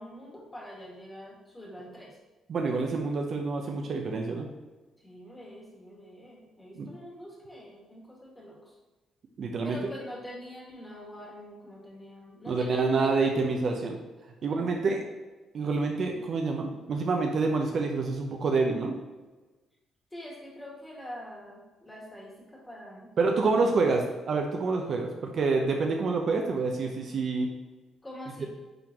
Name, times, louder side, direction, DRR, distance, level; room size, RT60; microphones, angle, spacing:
voice 1, 0.0-2.2 5.0-8.8 9.6-13.5 14.4-14.9 20.1-23.1 23.4-24.0 28.0-28.5, equal, 10° left, -3 dB, 1.9 m, -45 dB
voice 2, 2.5-4.5 6.8-6.9 9.4-9.8 12.5-14.0 14.4-15.0 15.5-19.0 23.2-27.5, right 4 dB, 50° right, 2 dB, 0.8 m, -27 dB
8.9 x 3.7 x 3.0 m, 1.2 s
cardioid pair, 130°, 0 cm